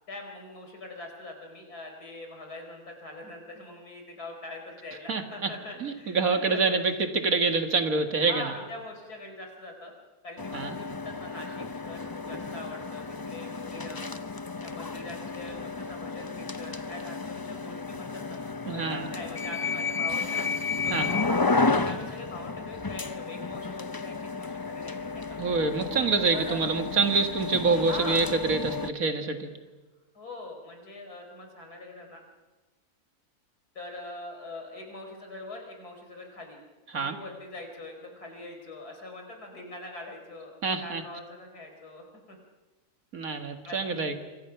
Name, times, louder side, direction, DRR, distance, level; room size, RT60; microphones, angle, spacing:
voice 1, 0.1-6.8 8.2-9.9 10.2-14.1 14.6-20.4 20.8-25.4 26.3-26.6 27.7-28.3 30.1-32.2 33.7-36.6 36.9-42.4 43.6-44.1, left 2 dB, 85° left, 3 dB, 4.9 m, -42 dB
voice 2, 5.8-8.5 10.5-10.7 18.7-19.1 20.9-21.1 25.4-29.5 36.9-37.2 40.6-41.0 43.1-44.2, right 4 dB, 65° right, 6 dB, 2.3 m, -26 dB
sound 1, 10.4-28.9, left 4 dB, 25° left, 0.5 m, -32 dB
26.5 x 26.0 x 5.9 m, 1.2 s
omnidirectional pair, 1.6 m